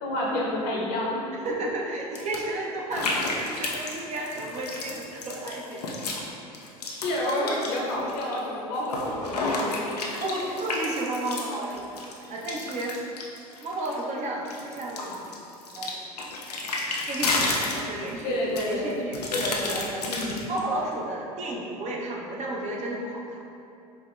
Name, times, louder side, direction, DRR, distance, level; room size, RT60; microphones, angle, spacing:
voice 1, 0.0-1.2 6.8-9.8 18.2-20.4, left 1 dB, 55° left, -3 dB, 0.9 m, -29 dB
voice 2, 1.4-5.8 10.0-11.9 12.3-12.9 13.6-15.3 15.8-16.1 17.1-19.2 19.7-20.1 20.5-23.4, right 2 dB, 35° right, -2 dB, 0.7 m, -32 dB
sound 1, 2.1-2.4 2.9-6.3 6.5-8.4 8.7-14.0 14.4-18.2 18.6-20.6, left 2 dB, 85° left, 0.5 m, -31 dB
5.0 x 2.8 x 2.3 m, 2.7 s
hypercardioid pair, 80°, 20 cm